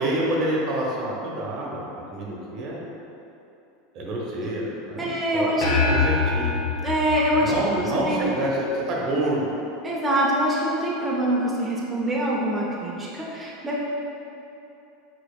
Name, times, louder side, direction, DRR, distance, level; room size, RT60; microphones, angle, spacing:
voice 1, 0.0-2.8 3.9-6.6 7.4-9.5, right 1 dB, 50° right, -3 dB, 0.9 m, -27 dB
voice 2, 5.0-6.0 6.8-8.3 9.8-13.8, right 1 dB, 15° right, -5 dB, 0.7 m, -25 dB
sound 1, 5.6-8.3, left 4 dB, 75° left, 0.9 m, -24 dB
5.0 x 3.9 x 2.3 m, 2.9 s
hypercardioid pair, 95°, 0 cm